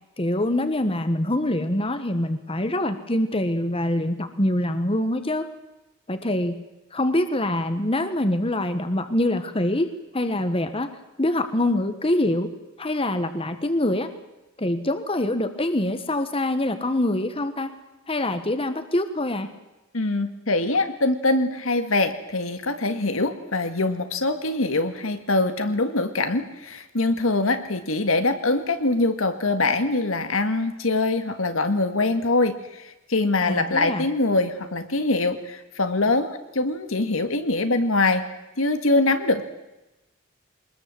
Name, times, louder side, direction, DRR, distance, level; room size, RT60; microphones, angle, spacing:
voice 1, 0.2-5.5 6.1-6.6 6.9-10.9 11.2-12.5 12.8-14.1 14.6-17.7 18.1-19.5 33.4-34.0, left 1 dB, 25° left, 9 dB, 1.4 m, -24 dB
voice 2, 19.9-38.3 38.6-39.4, left 2 dB, 80° left, 8 dB, 2.0 m, -23 dB
23.5 x 20.5 x 7.8 m, 1.0 s
head